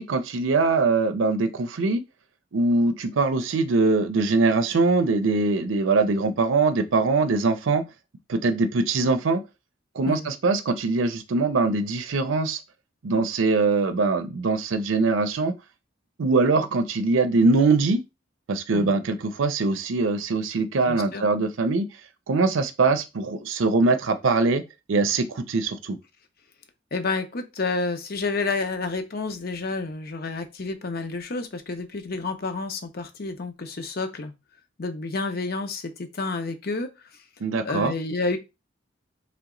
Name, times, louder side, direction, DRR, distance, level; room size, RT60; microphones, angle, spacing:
voice 1, 0.0-2.0 2.5-7.8 8.3-9.4 9.9-12.6 13.0-15.5 16.2-18.0 18.5-21.9 22.3-24.6 24.9-26.0 37.4-37.9, right 3 dB, 90° right, 0.5 m, -22 dB
voice 2, 20.8-21.2 26.9-34.3 34.8-36.9 37.6-38.4, left 3 dB, 55° left, 0.7 m, -29 dB
3.4 x 2.9 x 3.7 m
head